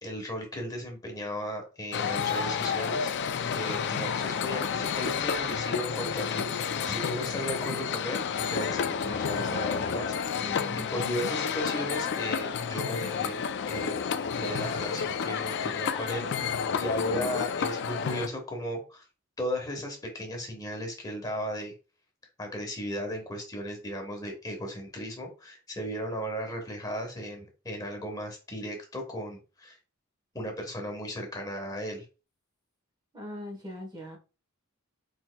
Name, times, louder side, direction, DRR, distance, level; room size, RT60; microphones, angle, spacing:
voice 1, 0.0-3.1 3.5-10.5 10.8-14.0 14.3-19.0 19.4-21.7 22.4-29.8 30.3-32.0, equal, 20° left, 2 dB, 1.2 m, -36 dB
sound 1, 1.9-18.3, left 6 dB, 55° left, 0.4 m, -30 dB
voice 2, 10.4-11.2 17.1-17.4 33.1-34.2, left 1 dB, 20° right, 1 dB, 1.2 m, -40 dB
4.5 x 4.4 x 2.3 m, 0.32 s
head